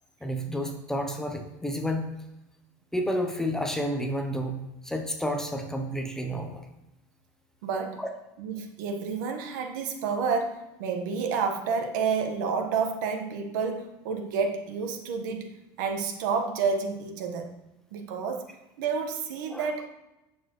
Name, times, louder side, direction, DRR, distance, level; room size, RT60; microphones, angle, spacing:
voice 1, 0.2-2.1 2.9-6.6 8.0-8.1 19.5-19.7, equal, 5° left, 3 dB, 0.7 m, -30 dB
voice 2, 7.6-8.0 8.4-15.5 15.8-17.6 17.9-18.4 18.8-19.9, right 5 dB, 80° right, 6 dB, 1.2 m, -29 dB
8.4 x 7.0 x 3.0 m, 0.93 s
cardioid pair, 155°, 10 cm